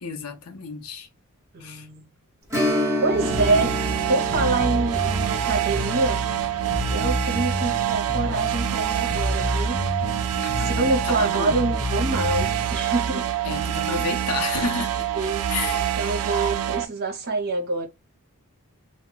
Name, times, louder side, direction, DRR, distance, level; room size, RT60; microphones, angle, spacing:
voice 1, 0.0-1.1 1.6-1.9 10.3-11.6 13.4-15.1 15.5-15.9, left 4 dB, 80° left, 0.6 m, -31 dB
voice 2, 1.5-2.1 3.0-3.8 4.1-6.2 6.9-9.8 10.6-13.3 15.2-15.4 16.0-17.9, right 3 dB, 45° right, 0.8 m, -26 dB
Strum, 2.5-11.7 12.0-12.1 14.7-14.8 15.3-15.4, left 1 dB, 15° right, 0.9 m, -32 dB
sound 1, 3.1-16.8, right 10 dB, 70° right, 0.3 m, -26 dB
Bass guitar, 3.3-12.8, left 2 dB, 25° left, 0.4 m, -30 dB
2.2 x 2.1 x 3.7 m
head